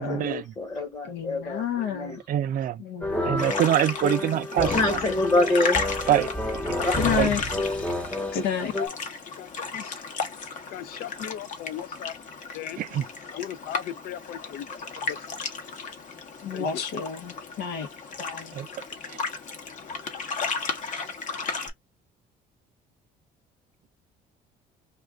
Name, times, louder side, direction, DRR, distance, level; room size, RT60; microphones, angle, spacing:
voice 1, 0.0-2.2 4.5-5.8 6.8-6.9, left 2 dB, 25° left, 1.1 m, -26 dB
voice 2, 1.1-2.2 2.8-3.5 4.7-4.8 7.0-7.4 8.3-8.7 16.4-17.9 18.2-18.5, left 7 dB, 90° left, 0.9 m, -30 dB
voice 3, 2.3-2.8 3.2-4.7 6.1-6.6 7.2-7.3 12.8-13.0 18.5-18.7 19.1-19.2, right 11 dB, 55° right, 0.5 m, -24 dB
sound 1, 3.0-8.9, left 1 dB, 5° left, 0.5 m, -30 dB
sound 2, 3.4-21.7, left 4 dB, 50° left, 0.9 m, -34 dB
voice 4, 8.2-9.0 9.4-10.0 10.7-12.1 12.5-12.8 13.3-14.7 15.1-15.2 16.5-16.8, left 11 dB, 65° left, 0.4 m, -37 dB
2.4 x 2.3 x 3.4 m
cardioid pair, 110°, 17 cm